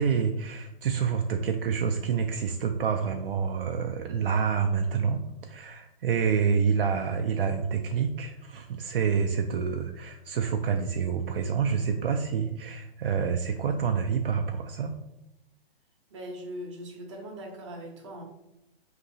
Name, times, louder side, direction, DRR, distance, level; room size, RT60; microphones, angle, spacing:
voice 1, 0.0-14.9, right 6 dB, 65° right, 4 dB, 0.4 m, -27 dB
voice 2, 16.1-18.2, equal, 30° right, 0 dB, 0.7 m, -40 dB
5.4 x 2.9 x 2.6 m, 0.86 s
hypercardioid pair, 175°, 31 cm